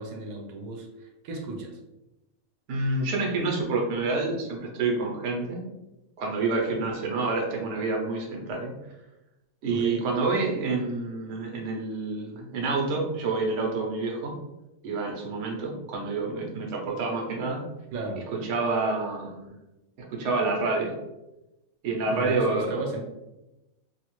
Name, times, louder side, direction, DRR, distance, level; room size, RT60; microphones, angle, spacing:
voice 1, 0.0-1.8 9.7-10.1 17.9-18.3 22.1-23.0, right 2 dB, 90° right, 1 dB, 1.1 m, -35 dB
voice 2, 2.7-5.6 6.2-8.7 9.6-14.3 14.8-17.6 18.3-19.5 20.1-21.0 21.8-22.8, right 3 dB, 65° right, 0 dB, 1.0 m, -28 dB
2.7 x 2.4 x 3.0 m, 0.96 s
omnidirectional pair, 1.5 m